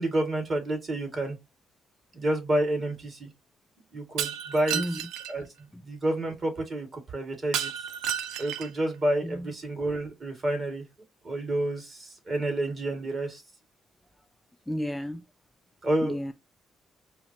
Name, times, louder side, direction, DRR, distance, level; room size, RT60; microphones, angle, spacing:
voice 1, 0.0-1.4 2.1-3.3 3.9-4.8 5.3-5.4 5.8-7.7 8.4-10.8 11.2-13.4 15.8-16.2, right 1 dB, 35° right, 2.0 m, -29 dB
Shatter, 4.2-5.3 7.5-8.8, right 9 dB, 90° right, 0.4 m, -32 dB
voice 2, 14.7-15.2 16.0-16.3, equal, 5° left, 0.3 m, -32 dB
4.8 x 2.1 x 2.8 m
cardioid pair, 90°, 0 cm